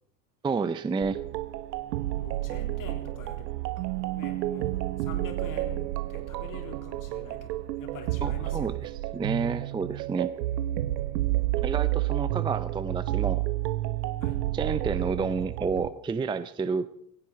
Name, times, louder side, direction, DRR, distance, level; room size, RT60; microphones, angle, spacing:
voice 1, 0.4-1.2 8.2-10.3 11.6-13.4 14.5-16.9, right 5 dB, 10° right, 14 dB, 0.5 m, -30 dB
sound 1, 1.0-15.9, right 16 dB, 75° right, 0.9 m, -30 dB
voice 2, 2.2-3.5 4.2-8.9 14.2-14.4, left 5 dB, 40° left, 4 dB, 3.7 m, -44 dB
Keyboard (musical), 3.8-6.5, right 25 dB, 45° right, 0.8 m, -38 dB
17.0 x 16.0 x 4.4 m, 0.71 s
hypercardioid pair, 85°, 50 cm